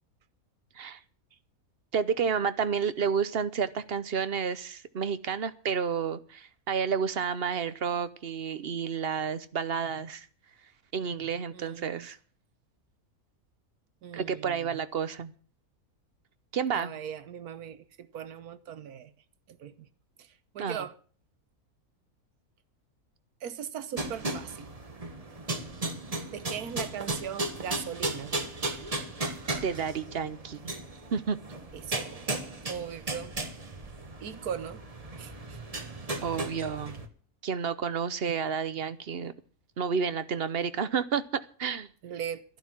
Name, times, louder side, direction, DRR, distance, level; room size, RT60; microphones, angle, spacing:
voice 1, 1.9-10.3 10.9-12.2 14.1-15.3 16.5-16.9 20.6-20.8 29.6-30.7 31.1-31.4 36.2-37.0 37.4-39.3 39.8-41.9, right 6 dB, 50° right, 0.9 m, -30 dB
voice 2, 11.5-12.1 14.0-14.8 16.7-19.1 19.5-19.9 20.2-20.9 23.4-24.7 26.3-28.4 31.7-32.4 32.7-33.4 34.2-34.8 35.1-35.6 42.0-42.4, right 8 dB, 90° right, 1.5 m, -39 dB
sound 1, 24.0-37.1, right 2 dB, 25° right, 1.3 m, -36 dB
12.0 x 11.5 x 6.0 m
omnidirectional pair, 1.6 m